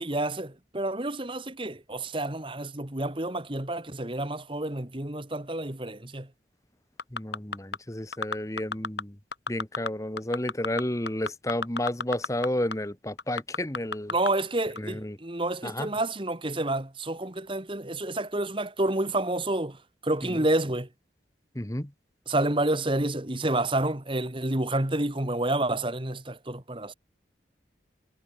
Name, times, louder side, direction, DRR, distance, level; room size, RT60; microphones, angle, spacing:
voice 1, 0.0-6.3 14.1-19.8 20.0-20.9 22.3-26.9, right 2 dB, 30° right, 1.7 m, -29 dB
sound 1, 7.0-7.8 8.1-9.0 9.3-9.9 10.2-12.5 12.7-12.8 13.2-14.3 14.8-14.9, left 4 dB, 75° left, 5.6 m, -30 dB
voice 2, 7.1-9.1 9.5-14.1 14.8-15.2 15.6-15.9 20.3-20.4 21.5-21.9, left 1 dB, 20° left, 1.4 m, -31 dB
head